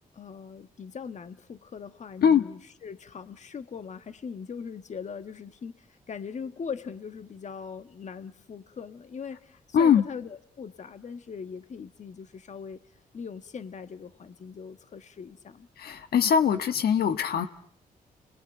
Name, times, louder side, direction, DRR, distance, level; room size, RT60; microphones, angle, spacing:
voice 1, 0.1-12.8 13.1-15.7, left 6 dB, 50° left, 10 dB, 1.6 m, -40 dB
voice 2, 15.8-17.5, left 7 dB, 85° left, 9 dB, 1.5 m, -22 dB
30.0 x 22.0 x 8.9 m, 0.64 s
cardioid pair, 110°, 16 cm